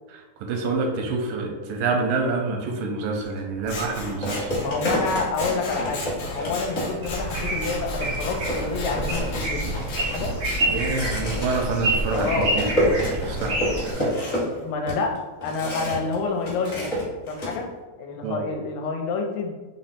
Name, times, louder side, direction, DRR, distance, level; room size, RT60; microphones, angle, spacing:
voice 1, 0.1-4.5 10.7-14.1 18.2-18.4, right 3 dB, 85° right, 2 dB, 2.3 m, -27 dB
sound 1, 3.2-3.4 4.2-7.2 7.6-7.7 8.0-16.1 16.4-17.6, equal, 45° left, 0.9 m, -29 dB
Scissors, 3.6-10.6, left 2 dB, 60° left, 1.6 m, -35 dB
voice 2, 4.6-9.7 10.0-10.3 12.1-12.5 14.6-15.1 15.4-16.9 17.3-17.7 18.0-19.5, left 4 dB, 85° left, 2 dB, 2.2 m, -28 dB
sound 2, 7.0-13.9, right 1 dB, 70° right, 1.0 m, -28 dB
5.4 x 2.1 x 4.2 m, 1.2 s
omnidirectional pair, 3.9 m